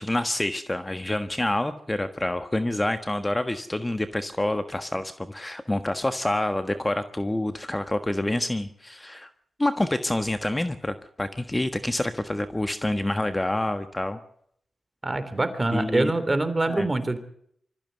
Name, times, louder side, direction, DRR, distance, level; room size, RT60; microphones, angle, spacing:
voice 1, 0.0-9.3 9.6-14.2 15.7-16.1 16.7-16.9, left 1 dB, 20° left, 9 dB, 1.4 m, -27 dB
voice 2, 15.0-17.2, right 2 dB, 30° right, 11 dB, 3.4 m, -25 dB
24.0 x 14.0 x 7.8 m, 0.68 s
supercardioid pair, 40°, 0 cm